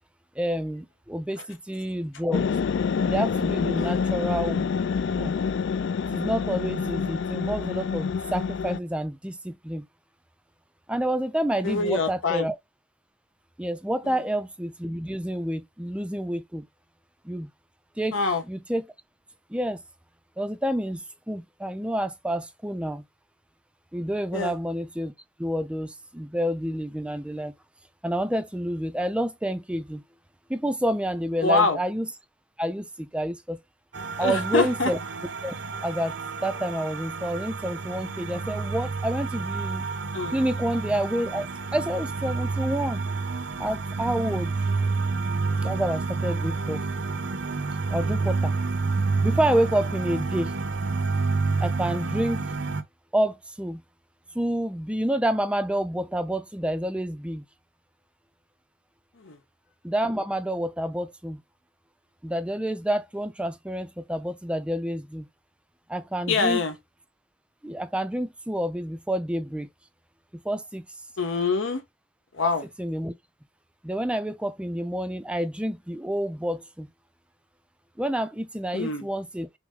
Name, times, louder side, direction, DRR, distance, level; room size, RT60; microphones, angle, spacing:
voice 1, 0.4-2.5 3.0-4.7 5.2-5.4 6.1-9.8 10.9-12.6 13.6-16.6 17.2-17.5 18.0-18.2 18.5-18.8 19.5-19.8 20.4-23.0 23.9-25.1 25.4-27.5 28.0-30.0 30.5-32.1 32.6-33.6 34.2-35.0 35.4-35.5 35.8-39.9 40.3-41.5 41.7-43.0 43.6-44.6 45.6-46.8 47.9-48.6 49.2-50.5 51.6-52.4 53.1-53.8 54.3-57.4 59.8-61.4 62.2-65.3 65.9-66.6 67.6-69.7 70.3-70.8 72.8-73.1 73.8-76.9 78.0-79.5, right 1 dB, 5° right, 0.4 m, -28 dB
sound 1, 2.3-8.8, left 6 dB, 65° left, 0.3 m, -27 dB
voice 2, 11.6-12.5 14.0-14.2 18.1-18.4 24.3-24.5 31.4-31.8 34.2-34.9 40.1-40.4 59.1-59.4 66.3-66.8 71.2-71.8 72.3-72.7 78.7-79.1, left 3 dB, 90° left, 1.1 m, -25 dB
sound 2, 33.9-52.8, right 4 dB, 60° right, 0.6 m, -29 dB
6.0 x 2.1 x 3.6 m
head